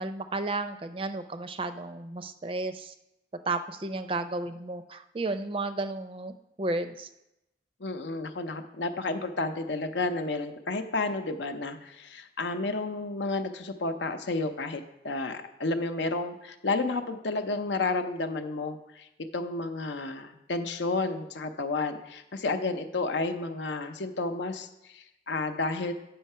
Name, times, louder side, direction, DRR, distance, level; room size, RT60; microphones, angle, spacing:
voice 1, 0.0-2.9 3.5-7.1, right 2 dB, 30° right, 10 dB, 0.4 m, -33 dB
voice 2, 7.8-19.1 19.3-25.9, left 3 dB, 90° left, 8 dB, 0.7 m, -31 dB
8.4 x 5.7 x 5.5 m, 0.88 s
head